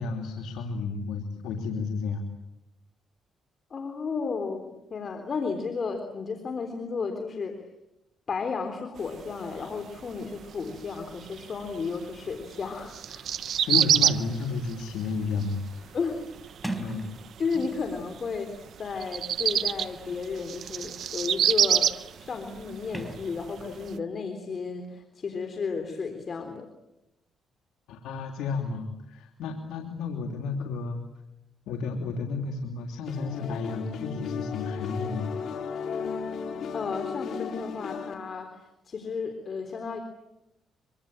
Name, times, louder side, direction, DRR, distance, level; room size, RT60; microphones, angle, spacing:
voice 1, 0.0-2.3 13.6-15.9 16.8-17.1 27.9-31.0 31.7-35.3, left 4 dB, 90° left, 2 dB, 3.0 m, -32 dB
voice 2, 3.7-7.6 8.3-13.3 15.9-16.2 17.4-21.9 22.2-26.7 36.7-40.0, left 5 dB, 45° left, 5 dB, 3.7 m, -33 dB
sound 1, 9.0-24.0, right 9 dB, 65° right, 1.0 m, -29 dB
Sliding door, 13.0-18.0 18.9-23.9, right 1 dB, 5° right, 4.3 m, -45 dB
sound 2, 33.0-38.1, left 6 dB, 65° left, 4.5 m, -35 dB
25.0 x 24.5 x 8.9 m, 0.88 s
cardioid pair, 90°, 0 cm